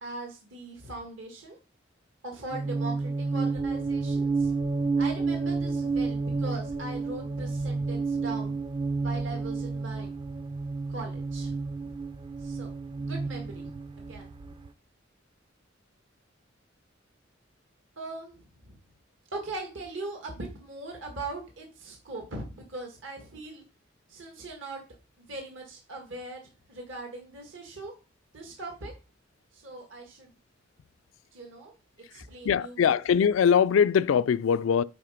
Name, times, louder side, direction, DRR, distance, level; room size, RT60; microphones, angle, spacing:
voice 1, 0.0-1.6 2.2-4.5 5.0-8.6 9.0-10.1 10.9-11.9 12.4-13.7 14.0-14.3 18.0-18.8 19.3-23.6 24.1-24.8 25.2-27.9 28.3-28.9 29.5-30.3 31.3-31.7 32.1-33.0, right 2 dB, 70° right, 1.9 m, -40 dB
sound 1, 2.5-14.5, right 4 dB, 25° right, 0.4 m, -30 dB
sound 2, 3.6-14.7, right 3 dB, 85° right, 0.5 m, -49 dB
voice 2, 32.1-34.8, left 7 dB, 80° left, 0.3 m, -22 dB
8.8 x 4.1 x 5.0 m
head